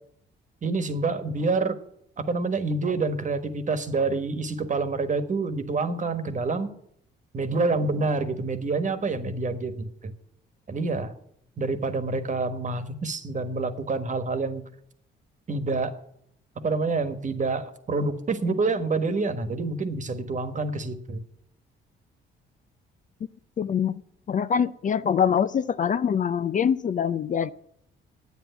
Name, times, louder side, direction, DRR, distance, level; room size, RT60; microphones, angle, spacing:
voice 1, 0.6-1.8 2.2-6.7 7.3-10.1 10.7-11.1 11.6-14.6 15.5-16.0 16.6-21.2, right 3 dB, 40° right, 10 dB, 1.4 m, -27 dB
voice 2, 23.6-24.0 24.3-27.5, left 7 dB, 40° left, 14 dB, 0.5 m, -24 dB
9.1 x 8.2 x 9.3 m, 0.70 s
cardioid pair, 90°, 20 cm